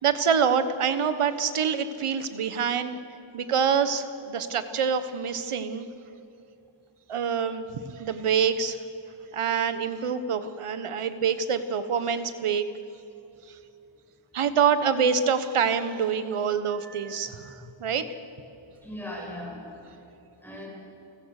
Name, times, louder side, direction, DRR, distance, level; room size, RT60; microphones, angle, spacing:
voice 1, 0.0-3.0 3.3-5.9 7.1-8.8 9.3-12.6 14.3-17.5 17.8-18.1, right 6 dB, 85° right, 11 dB, 1.4 m, -26 dB
voice 2, 16.8-17.7 18.8-19.7 20.4-20.7, left 1 dB, 5° left, -3 dB, 6.9 m, -40 dB
29.5 x 16.0 x 6.6 m, 2.9 s
wide cardioid pair, 120°, 50 cm